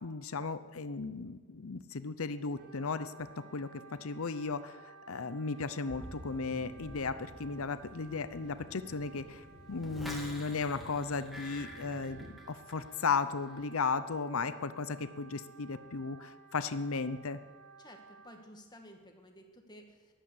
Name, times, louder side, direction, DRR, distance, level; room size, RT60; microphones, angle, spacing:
voice 1, 0.0-3.1 3.5-3.7 4.0-17.4, left 4 dB, 70° left, 12 dB, 0.7 m, -35 dB
Wind instrument woodwind instrument, 2.5-18.4, right 4 dB, 90° right, 2.5 m, -56 dB
sound 1, 5.9-12.3, right 1 dB, 50° right, 2.0 m, -51 dB
sound 2, 9.8-12.9 13.2-13.6, left 1 dB, ahead, 2.1 m, -47 dB
voice 2, 17.8-20.1, equal, 20° left, 3 dB, 1.7 m, -54 dB
13.5 x 11.5 x 8.5 m, 1.4 s
head